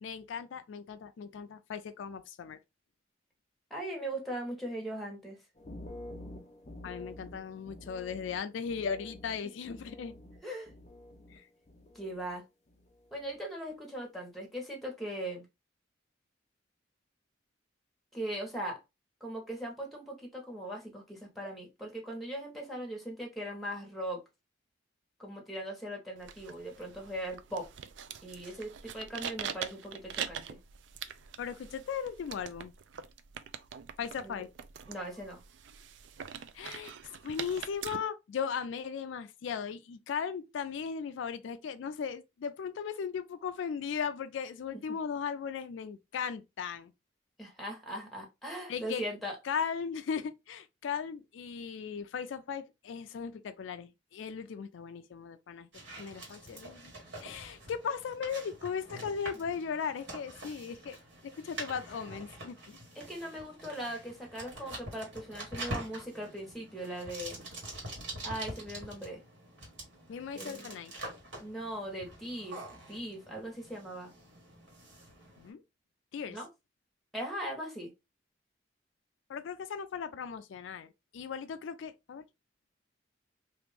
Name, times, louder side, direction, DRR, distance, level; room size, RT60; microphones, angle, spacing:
voice 1, 0.0-2.6 6.8-10.1 11.3-11.5 31.4-32.7 34.0-34.5 36.5-36.9 37.2-46.9 48.7-49.0 49.4-55.7 56.0-56.9 57.2-61.0 61.2-62.8 70.1-70.9 75.4-75.6 76.1-76.4 79.3-82.2, left 6 dB, 80° left, 0.3 m, -37 dB
voice 2, 3.7-5.4 10.4-10.7 11.9-12.4 13.1-15.4 18.1-18.8 19.2-24.2 25.2-27.7 28.2-30.6 34.2-34.4 34.9-35.4 44.7-45.0 47.4-49.4 62.9-67.4 68.2-69.2 70.3-70.7 71.4-72.6 72.9-74.1 76.3-76.5 77.1-77.9, right 1 dB, ahead, 1.1 m, -39 dB
sound 1, 5.5-11.4 11.7-12.4 12.7-13.1, left 1 dB, 35° left, 0.7 m, -49 dB
sound 2, 26.2-38.0, right 8 dB, 70° right, 0.4 m, -43 dB
sound 3, 55.7-75.5, right 1 dB, 85° right, 1.6 m, -45 dB
3.0 x 2.5 x 3.3 m
head